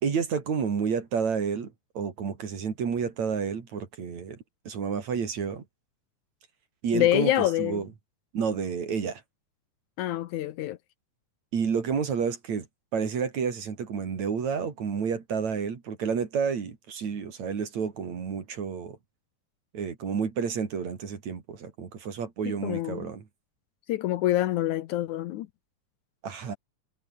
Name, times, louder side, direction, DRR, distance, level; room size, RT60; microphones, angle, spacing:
voice 1, 0.0-4.4 4.7-5.6 6.8-7.3 7.6-7.9 8.3-9.2 11.5-12.7 12.9-19.0 19.7-23.2 26.2-26.6, right 6 dB, 55° right, 4.2 m, -30 dB
voice 2, 6.9-7.8 10.0-10.8 22.6-23.1 23.9-25.5, left 14 dB, 75° left, 2.1 m, -26 dB
omnidirectional pair, 3.8 m